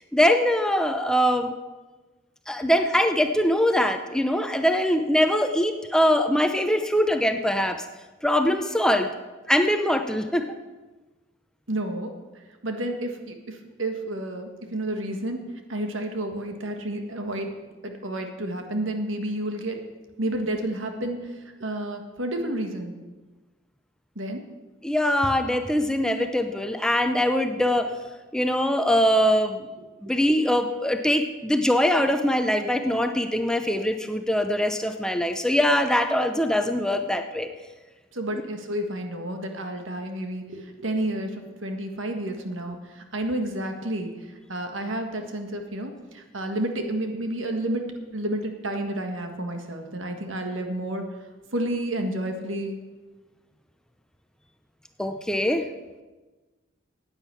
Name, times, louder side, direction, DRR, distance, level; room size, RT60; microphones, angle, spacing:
voice 1, 0.1-1.5 2.5-7.8 8.2-9.1 9.5-10.5 24.8-27.9 28.3-29.7 30.0-37.5 55.0-55.7, equal, 5° left, 6 dB, 0.6 m, -22 dB
voice 2, 11.7-12.2 12.6-15.4 15.7-17.5 17.8-19.8 20.2-21.3 21.6-22.9 24.1-24.4 38.1-44.1 44.5-51.0 51.5-52.8, right 1 dB, 80° right, 5 dB, 1.6 m, -30 dB
10.0 x 9.0 x 8.3 m, 1.2 s
head